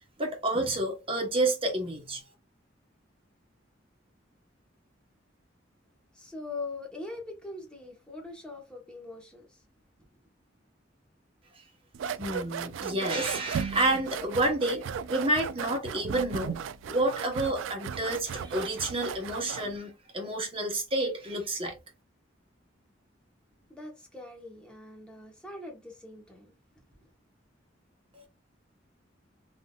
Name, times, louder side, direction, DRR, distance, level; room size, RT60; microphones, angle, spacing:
voice 1, 0.2-2.2 12.2-14.8 15.1-16.5 16.9-21.8 28.1-28.3, right 2 dB, 30° right, 1.0 m, -29 dB
voice 2, 6.1-9.4 23.7-26.5, left 3 dB, 5° left, 1.0 m, -42 dB
sound 1, 11.9-19.8, right 7 dB, 80° right, 0.3 m, -36 dB
3.6 x 2.6 x 2.3 m
head